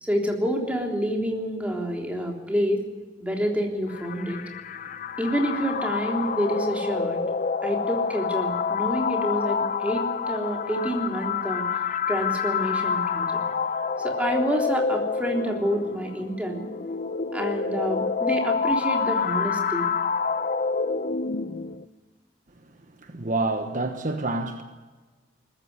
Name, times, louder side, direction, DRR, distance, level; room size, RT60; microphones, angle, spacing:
voice 1, 0.0-2.8 3.2-4.4 5.2-7.2 7.6-11.7 12.1-13.4 14.0-16.7 17.3-19.9, equal, 10° right, 3.6 m, -28 dB
sound 1, 3.9-21.8, left 5 dB, 45° left, 0.8 m, -28 dB
voice 2, 23.0-24.6, right 2 dB, 45° right, 1.3 m, -28 dB
21.0 x 14.5 x 9.7 m
head